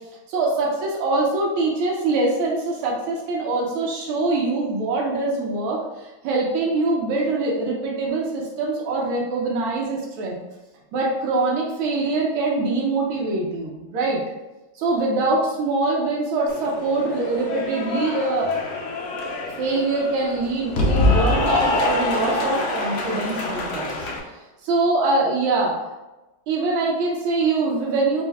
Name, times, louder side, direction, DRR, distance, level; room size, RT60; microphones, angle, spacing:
voice 1, 0.3-10.4 10.9-14.2 14.7-18.5 19.6-24.0 24.6-25.7 26.5-28.2, right 3 dB, 90° right, -3 dB, 1.6 m, -23 dB
Cheering / Applause, 16.5-24.2, left 2 dB, 75° left, 0.7 m, -25 dB
4.3 x 2.7 x 3.3 m, 1.1 s
omnidirectional pair, 2.3 m